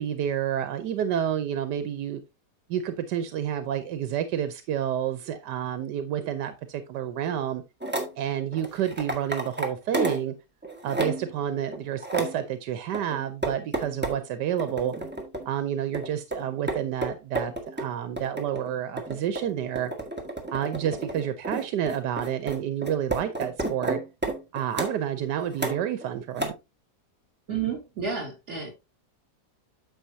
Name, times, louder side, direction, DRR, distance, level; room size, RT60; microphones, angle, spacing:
voice 1, 0.0-2.2 2.7-7.6 8.2-10.3 10.8-14.9 15.5-19.9 20.5-24.0 24.5-26.5, right 9 dB, 85° right, 1.4 m, -29 dB
sound 1, 7.8-8.1 8.5-10.3 10.6-11.3 11.7-12.4 12.9-14.2 14.6-15.5 15.9-25.0 25.5-26.0 26.4-26.5, right 2 dB, 5° right, 1.5 m, -31 dB
voice 2, 27.5-28.7, right 6 dB, 45° right, 3.6 m, -31 dB
9.2 x 6.8 x 2.7 m
omnidirectional pair, 1.8 m